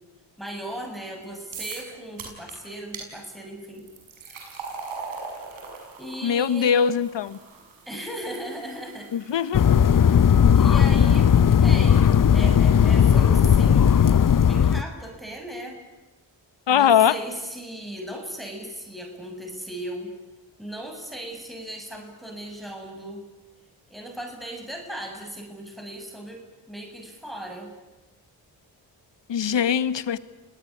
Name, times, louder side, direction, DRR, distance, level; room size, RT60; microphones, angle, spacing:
voice 1, 0.4-3.9 6.0-6.8 7.9-9.3 10.5-11.3 11.6-13.9 14.5-15.8 16.7-20.1 20.6-23.2 23.9-26.4 26.7-27.7 29.5-29.6, right 1 dB, ahead, 2 dB, 7.3 m, -37 dB
sound 1, 1.5-1.9 2.2-2.5 2.9-3.1 3.7-10.9, right 4 dB, 85° right, 6.6 m, -41 dB
voice 2, 6.2-7.4 9.1-9.6 16.7-17.2 29.3-30.2, left 8 dB, 70° left, 15 dB, 1.3 m, -21 dB
sound 2, 9.5-14.8, left 8 dB, 45° left, 0.8 m, -17 dB
29.0 x 18.0 x 10.0 m, 1.1 s
supercardioid pair, 45°, 46 cm